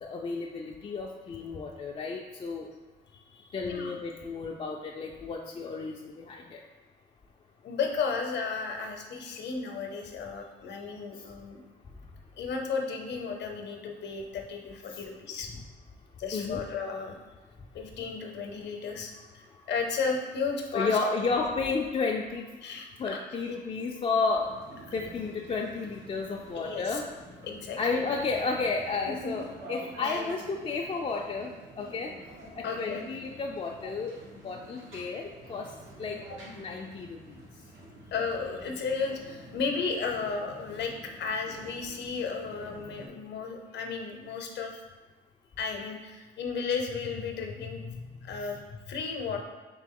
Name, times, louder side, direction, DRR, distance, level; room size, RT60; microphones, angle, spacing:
voice 1, 0.0-2.7 3.5-6.6 14.9-15.0 15.5-15.6 16.3-16.6 20.7-22.6 23.0-24.6 24.9-27.1 27.8-32.1 32.5-34.2 34.4-35.7 36.0-36.2 36.6-37.4, left 4 dB, 30° left, -1 dB, 0.4 m, -32 dB
voice 2, 3.1-3.9 7.6-11.6 12.4-15.5 16.2-17.2 17.7-19.4 19.7-21.0 22.6-23.2 26.6-27.0 27.4-28.0 29.2-29.3 30.0-30.2 32.6-33.0 36.3-36.4 38.1-44.8 45.6-49.4, left 5 dB, 60° left, 3 dB, 0.7 m, -34 dB
sound 1, 24.4-43.1, equal, 80° right, 1.2 m, -48 dB
3.8 x 2.9 x 3.7 m, 1.3 s
cardioid pair, 90°, 20 cm